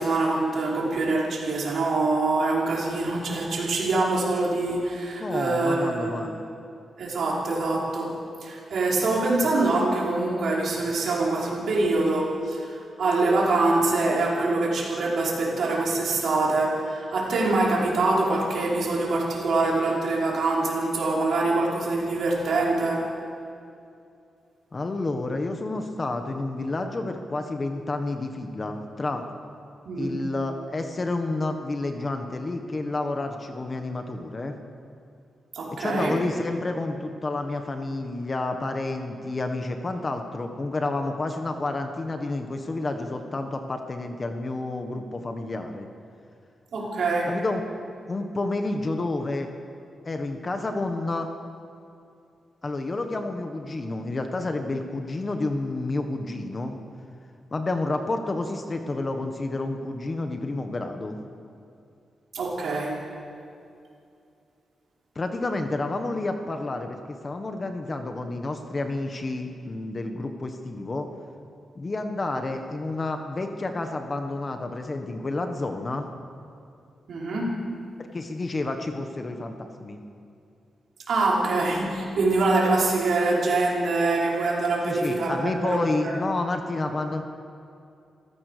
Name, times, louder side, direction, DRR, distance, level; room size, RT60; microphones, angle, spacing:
voice 1, 0.0-6.4 7.0-8.2 8.4-23.1 29.9-30.2 35.5-36.2 46.7-47.3 62.3-63.0 77.1-77.7 81.1-86.2, right 2 dB, 60° right, -4 dB, 5.3 m, -24 dB
voice 2, 5.2-6.3 24.7-29.2 30.0-34.5 35.8-45.9 47.3-47.6 48.1-49.5 50.0-51.3 52.6-56.7 57.5-61.2 65.1-71.1 71.7-76.1 78.1-80.0 84.8-87.2, left 2 dB, 25° left, 5 dB, 1.4 m, -30 dB
27.0 x 15.5 x 6.8 m, 2.5 s
wide cardioid pair, 175°, 0 cm